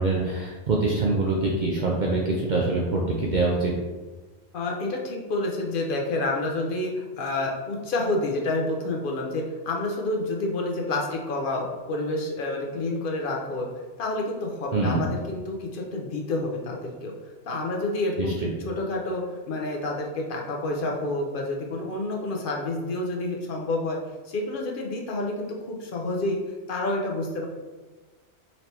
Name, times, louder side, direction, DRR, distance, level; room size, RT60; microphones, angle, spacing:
voice 1, 0.0-3.7 14.7-15.0 18.2-18.5, right 3 dB, 55° right, -3 dB, 0.5 m, -24 dB
voice 2, 4.5-13.7 14.0-17.1 17.5-18.3 18.6-24.0 24.2-26.4 26.7-27.5, left 2 dB, 50° left, 0 dB, 0.8 m, -29 dB
4.2 x 3.2 x 2.8 m, 1.2 s
omnidirectional pair, 1.2 m